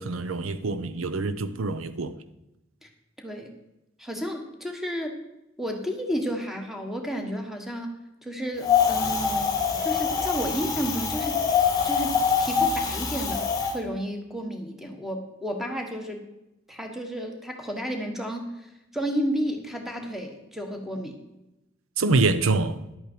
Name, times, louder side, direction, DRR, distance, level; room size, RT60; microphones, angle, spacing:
voice 1, 0.0-2.2 22.0-22.8, right 3 dB, 90° right, 0.7 m, -25 dB
voice 2, 3.2-3.5 4.0-5.2 5.6-7.9 8.2-9.5 9.8-11.4 11.8-13.5 13.7-16.2 16.7-21.2, equal, ahead, 1.3 m, -32 dB
Wind, 8.6-13.7, left 6 dB, 20° left, 1.4 m, -24 dB
11.0 x 8.4 x 4.5 m
head